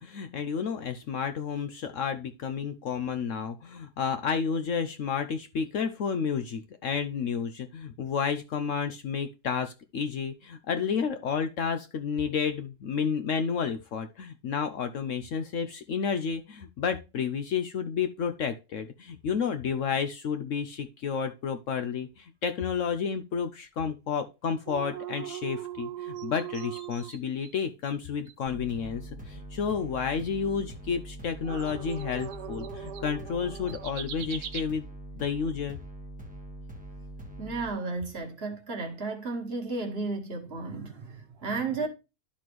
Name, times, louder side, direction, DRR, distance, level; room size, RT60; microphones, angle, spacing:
voice 1, 0.0-34.9 35.1-35.8, left 6 dB, 65° left, 0.8 m, -31 dB
sound 1, 24.7-27.5 27.8-27.9 28.3-28.4 31.4-34.6, right 9 dB, 85° right, 1.3 m, -39 dB
sound 2, 28.5-37.7, right 1 dB, 5° right, 1.0 m, -43 dB
voice 2, 37.4-41.9, right 3 dB, 40° right, 1.5 m, -33 dB
12.0 x 4.3 x 3.0 m
omnidirectional pair, 1.7 m